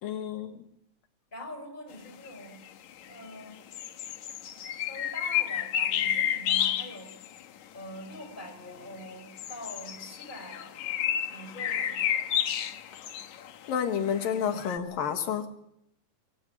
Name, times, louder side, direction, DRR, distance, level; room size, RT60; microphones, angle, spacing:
voice 1, 0.0-0.6 13.7-15.5, left 8 dB, 85° left, 6 dB, 3.5 m, -30 dB
voice 2, 1.3-2.7 3.1-3.7 4.8-7.2 7.7-10.8 11.3-12.2, left 1 dB, 15° left, 5 dB, 5.6 m, -44 dB
sound 1, 2.3-2.4 2.9-3.3 3.7-7.4 8.1-8.2 9.0-14.8, left 10 dB, 65° left, 2.3 m, -31 dB
26.0 x 23.5 x 7.5 m, 0.78 s
omnidirectional pair, 4.0 m